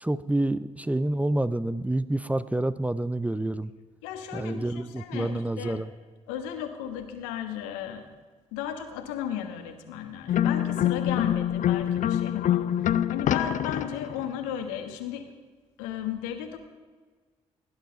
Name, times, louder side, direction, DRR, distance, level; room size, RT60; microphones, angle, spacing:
voice 1, 0.0-3.7 4.3-5.9, right 1 dB, 10° right, 15 dB, 0.6 m, -28 dB
voice 2, 4.0-5.9 6.3-8.1 8.5-15.3 15.8-16.6, left 9 dB, 75° left, 7 dB, 1.3 m, -35 dB
sound 1, 10.3-14.3, left 11 dB, 50° left, 0.6 m, -25 dB
18.0 x 10.5 x 5.3 m, 1.4 s
figure-of-eight pair, 45°, 16 cm